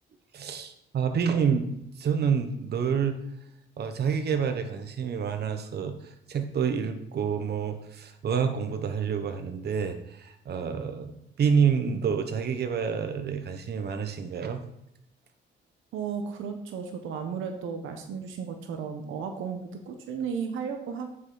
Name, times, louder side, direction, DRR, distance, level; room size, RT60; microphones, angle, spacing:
voice 1, 0.3-3.2 3.8-14.6, right 6 dB, 55° right, 7 dB, 1.1 m, -28 dB
voice 2, 15.9-21.1, right 6 dB, 85° right, 6 dB, 1.0 m, -34 dB
9.2 x 5.6 x 3.9 m, 0.77 s
cardioid pair, 90°, 20 cm